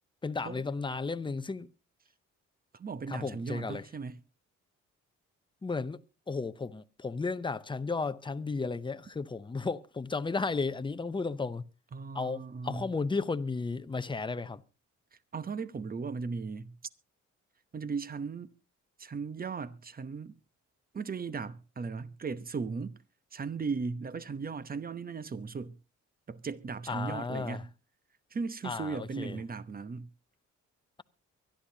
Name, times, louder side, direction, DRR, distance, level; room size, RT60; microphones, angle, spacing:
voice 1, 0.2-1.7 3.1-3.8 5.6-6.0 6.3-11.6 12.1-14.6 26.9-27.6 28.6-29.4, left 4 dB, 15° left, 0.7 m, -34 dB
voice 2, 2.7-4.2 11.9-12.9 15.3-16.7 17.7-18.5 19.0-20.3 20.9-23.0 23.3-25.8 26.3-27.7 28.3-30.1, right 5 dB, 30° right, 1.0 m, -37 dB
23.5 x 11.5 x 2.8 m
cardioid pair, 90°, 30 cm